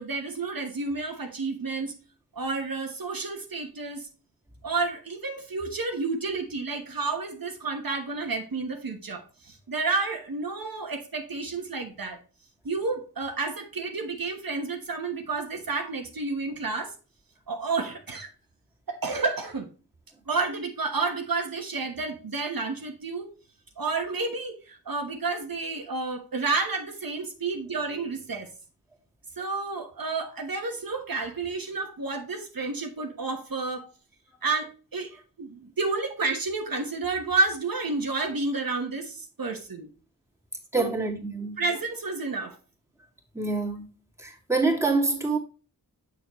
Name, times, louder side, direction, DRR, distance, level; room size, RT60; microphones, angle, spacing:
voice 1, 0.0-1.9 2.3-4.1 4.6-12.2 12.6-16.9 17.5-18.3 18.9-19.7 20.3-23.3 23.8-28.5 29.4-33.9 34.4-39.9 40.7-40.9 41.6-42.5, right 3 dB, 70° right, 1.2 m, -30 dB
voice 2, 40.7-41.5 43.3-43.8 44.2-45.4, right 3 dB, 10° right, 2.2 m, -26 dB
6.8 x 6.4 x 3.0 m
wide cardioid pair, 65°, 36 cm